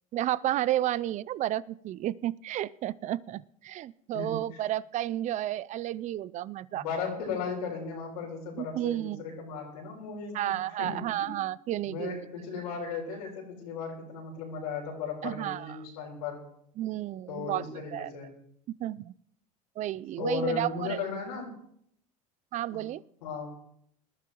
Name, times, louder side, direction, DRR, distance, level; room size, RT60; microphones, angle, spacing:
voice 1, 0.1-6.8 8.6-9.2 10.3-12.2 15.2-15.8 16.8-18.1 18.7-19.1 19.8-21.0 22.5-23.0, right 13 dB, 40° right, 21 dB, 0.4 m, -32 dB
voice 2, 6.7-11.3 11.8-16.4 17.3-18.3 20.2-21.5 22.7-22.8 23.2-23.5, left 5 dB, 90° left, 0 dB, 4.1 m, -36 dB
20.5 x 12.5 x 3.0 m, 0.68 s
supercardioid pair, 90°, 19 cm